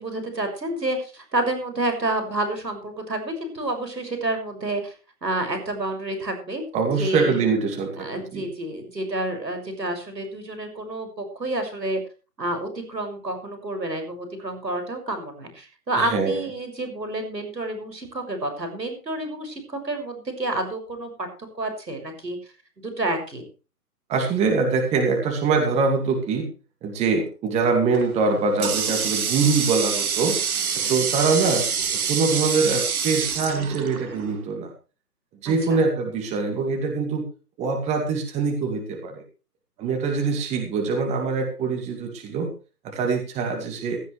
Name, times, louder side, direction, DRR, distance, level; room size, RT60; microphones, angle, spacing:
voice 1, 0.0-4.9 5.2-6.7 7.0-7.4 8.0-12.0 12.4-22.4 22.8-23.5 30.8-31.1 35.4-35.8, right 2 dB, 90° right, 6 dB, 6.7 m, -29 dB
voice 2, 6.7-8.5 16.0-16.3 24.1-26.4 26.8-30.4 30.9-31.6 32.1-34.7 35.4-37.2 37.6-39.2 39.8-42.5 42.8-44.0, right 4 dB, 15° right, 2 dB, 2.4 m, -23 dB
Water tap faucet, 27.9-34.4, right 6 dB, 60° right, 2.8 m, -26 dB
16.0 x 15.0 x 3.4 m, 0.34 s
figure-of-eight pair, 145°, 48 cm